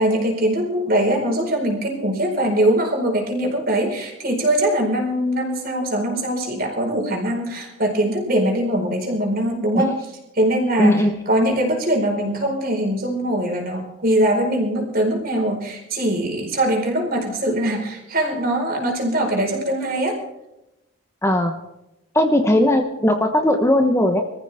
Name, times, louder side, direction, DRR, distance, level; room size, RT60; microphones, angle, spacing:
voice 1, 0.0-9.9 10.3-10.9 11.3-20.2, right 1 dB, 45° right, 1 dB, 4.6 m, -22 dB
voice 2, 10.8-11.1 21.2-21.6 22.1-24.2, left 1 dB, 15° left, 4 dB, 1.1 m, -18 dB
24.5 x 14.5 x 3.5 m, 0.92 s
head